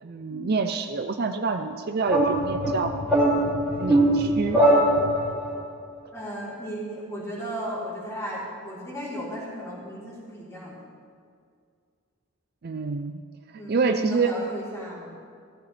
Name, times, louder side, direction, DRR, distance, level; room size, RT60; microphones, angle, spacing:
voice 1, 0.0-3.0 3.8-4.6 12.6-13.2 13.7-14.3, right 4 dB, 45° right, 7 dB, 0.5 m, -27 dB
sound 1, 2.1-5.5, right 1 dB, 5° right, 2.5 m, -21 dB
voice 2, 6.1-10.9 13.5-15.2, equal, 15° left, -7 dB, 3.6 m, -35 dB
15.5 x 14.0 x 3.3 m, 2.2 s
head